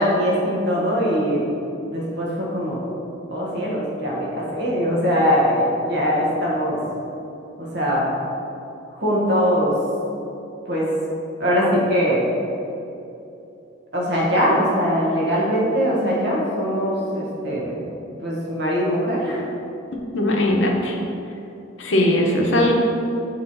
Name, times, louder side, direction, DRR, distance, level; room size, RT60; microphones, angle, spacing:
voice 1, 0.0-1.4 1.9-2.8 3.3-6.8 7.6-8.1 8.9-9.7 10.7-10.9 11.4-12.3 13.9-17.8 18.2-19.4, equal, 55° right, -5 dB, 1.4 m, -21 dB
voice 2, 20.1-21.0 21.8-22.7, left 1 dB, 70° left, 0 dB, 0.8 m, -19 dB
5.9 x 3.1 x 5.4 m, 2.8 s
head